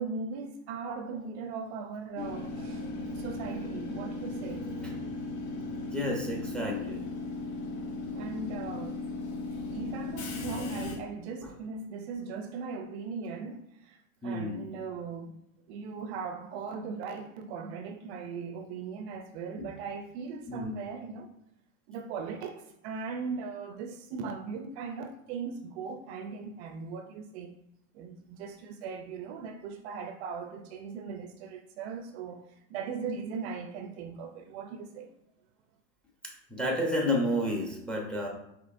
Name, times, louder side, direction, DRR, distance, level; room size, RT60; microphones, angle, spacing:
voice 1, 0.0-2.9 3.1-4.7 8.1-9.0 9.7-15.3 15.7-21.3 21.9-27.5 27.9-32.4 32.7-35.1, right 5 dB, 50° right, 0.5 m, -39 dB
Train / Subway metro underground, 2.2-10.9, left 3 dB, 65° left, 1.4 m, -36 dB
voice 2, 5.9-7.1 11.4-11.5 14.2-14.6 20.5-20.7 36.5-38.3, left 1 dB, ahead, 0.6 m, -30 dB
5.0 x 3.0 x 2.5 m
hypercardioid pair, 120°, 43 cm